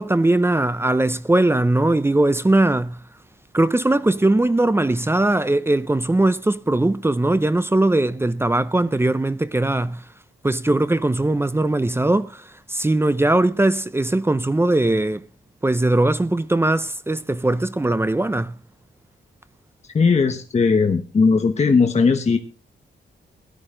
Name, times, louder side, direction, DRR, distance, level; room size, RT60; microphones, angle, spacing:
voice 1, 0.0-3.0 3.5-10.0 10.4-15.2 15.6-18.5, right 2 dB, 10° right, 0.6 m, -20 dB
voice 2, 19.9-22.4, left 4 dB, 35° left, 1.2 m, -18 dB
17.0 x 12.0 x 3.8 m
wide cardioid pair, 140°, 20 cm